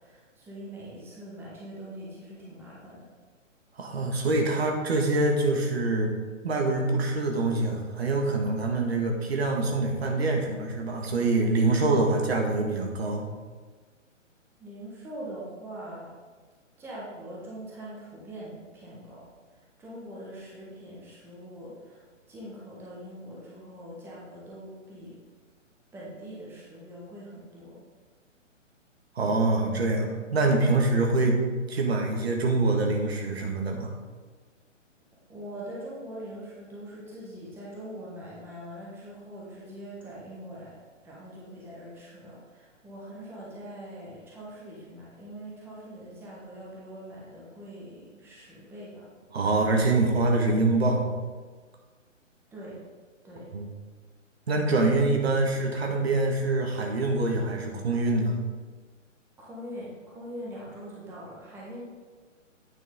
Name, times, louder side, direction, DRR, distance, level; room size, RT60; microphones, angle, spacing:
voice 1, 0.0-3.0 14.6-16.1 16.8-19.2 19.5-25.2 25.9-27.8 35.3-40.7 41.0-49.1 52.5-52.8 53.2-53.5 59.4-61.8, right 1 dB, 5° right, -6 dB, 1.2 m, -42 dB
voice 2, 3.8-6.1 6.4-13.2 29.2-31.4 31.7-33.9 49.3-51.0 53.5-53.7 54.5-58.4, right 2 dB, 50° right, 2 dB, 1.6 m, -25 dB
9.2 x 6.2 x 3.7 m, 1.4 s
figure-of-eight pair, 130°, 38 cm